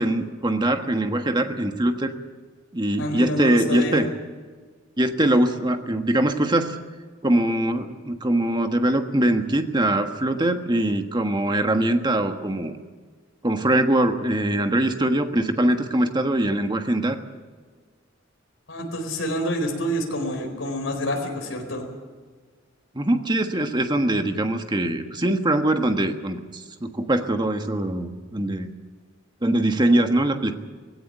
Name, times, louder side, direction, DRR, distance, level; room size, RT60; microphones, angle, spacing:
voice 1, 0.0-2.1 2.7-4.1 5.0-6.8 7.2-12.8 13.4-17.2 22.9-28.7 29.4-30.6, right 1 dB, 20° right, 6 dB, 1.4 m, -22 dB
voice 2, 3.0-4.0 18.7-21.8, equal, 75° left, 2 dB, 4.5 m, -27 dB
18.5 x 17.0 x 9.0 m, 1.5 s
head